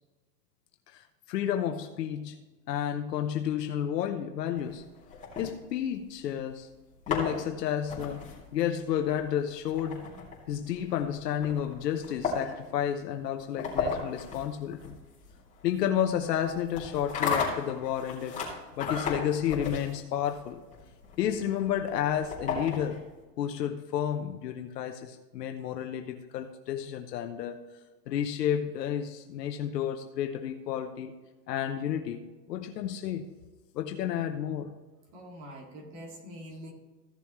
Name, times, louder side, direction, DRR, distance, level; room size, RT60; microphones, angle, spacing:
voice 1, 0.9-2.4 2.7-4.8 5.4-6.7 7.1-10.1 10.5-15.0 15.6-18.4 18.8-20.6 21.2-23.1 23.4-27.6 28.1-31.1 31.5-33.3 33.7-34.7, left 9 dB, 75° left, 6 dB, 1.0 m, -31 dB
sound 1, 4.6-6.2 6.8-23.2, left 5 dB, 15° left, 2.8 m, -36 dB
voice 2, 35.1-36.7, equal, 35° right, 1 dB, 2.3 m, -44 dB
15.5 x 7.0 x 3.1 m, 1.2 s
supercardioid pair, 150°, 49 cm